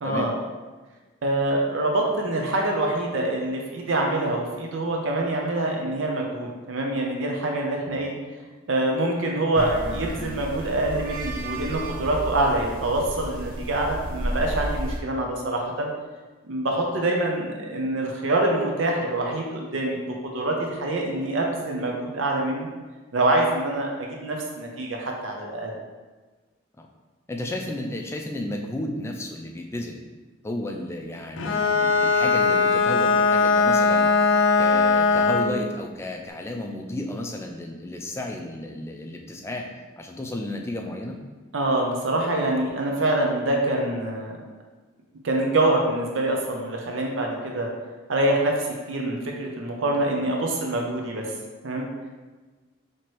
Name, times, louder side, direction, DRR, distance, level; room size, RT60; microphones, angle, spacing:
voice 1, 0.0-0.3 1.2-8.1 8.7-15.9 16.5-22.7 23.1-25.7 41.5-44.3 45.2-47.7 48.1-51.2 51.6-51.9, right 2 dB, 85° right, 0 dB, 0.6 m, -25 dB
sound 1, 9.5-15.0, right 1 dB, 45° right, 0.5 m, -32 dB
voice 2, 27.3-30.0 30.4-41.2, left 1 dB, 15° left, 2 dB, 0.3 m, -33 dB
Bowed string instrument, 31.4-35.6, left 4 dB, 80° left, 0.4 m, -20 dB
4.5 x 2.9 x 3.0 m, 1.3 s
head